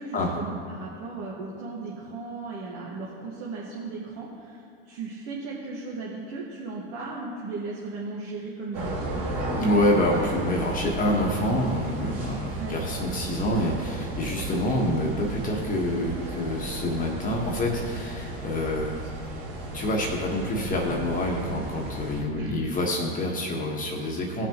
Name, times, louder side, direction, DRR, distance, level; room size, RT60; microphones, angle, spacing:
voice 1, 0.0-9.2 12.6-12.8 22.3-22.7, right 3 dB, 55° right, -5 dB, 1.7 m, -36 dB
sound 1, 8.7-22.2, right 2 dB, 75° right, 2.2 m, -34 dB
voice 2, 9.5-18.9 19.7-24.5, left 1 dB, 25° left, -1 dB, 1.3 m, -27 dB
17.0 x 6.0 x 3.0 m, 2.3 s
supercardioid pair, 110°, 31 cm